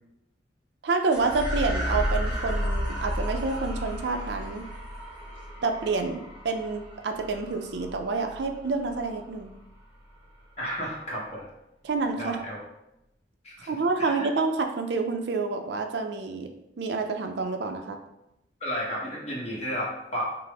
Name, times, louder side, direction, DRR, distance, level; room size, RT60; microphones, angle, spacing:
voice 1, 0.8-4.6 5.6-9.5 11.8-12.4 13.7-16.5 16.8-18.0, right 4 dB, 75° right, 5 dB, 0.4 m, -28 dB
sound 1, 1.1-9.7, equal, 15° left, 1.5 m, -33 dB
voice 2, 10.6-11.5 12.2-12.6 13.4-13.7 14.0-14.3 18.6-20.2, equal, 35° left, -4 dB, 1.1 m, -33 dB
5.7 x 2.0 x 3.4 m, 0.88 s
head